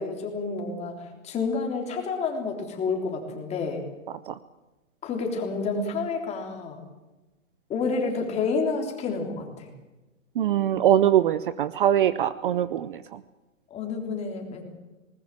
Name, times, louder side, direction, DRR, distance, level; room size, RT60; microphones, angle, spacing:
voice 1, 0.0-3.8 5.0-6.8 7.7-9.7 13.7-14.6, left 4 dB, 15° left, 2 dB, 3.5 m, -29 dB
voice 2, 10.4-13.0, right 11 dB, 40° right, 15 dB, 0.7 m, -22 dB
20.0 x 20.0 x 7.6 m, 1.1 s
hypercardioid pair, 155°, 40 cm